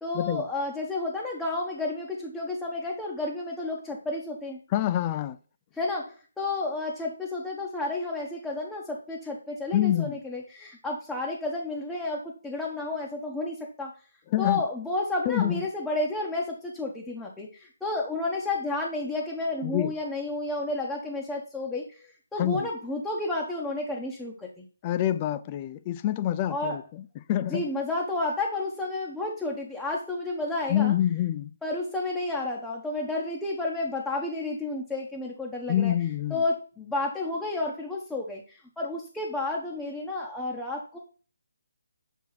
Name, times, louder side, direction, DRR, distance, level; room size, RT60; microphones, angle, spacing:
voice 1, 0.0-4.6 5.7-13.9 14.4-24.7 26.5-26.8 27.5-30.9 31.6-36.0 36.3-41.0, left 2 dB, 5° left, 0.7 m, -31 dB
voice 2, 4.7-5.4 9.7-10.2 14.3-14.6 15.3-15.6 19.6-19.9 22.4-22.7 24.8-27.6 30.7-31.5 35.7-36.4, left 12 dB, 25° left, 0.3 m, -26 dB
7.1 x 2.8 x 4.6 m
hypercardioid pair, 160°, 0 cm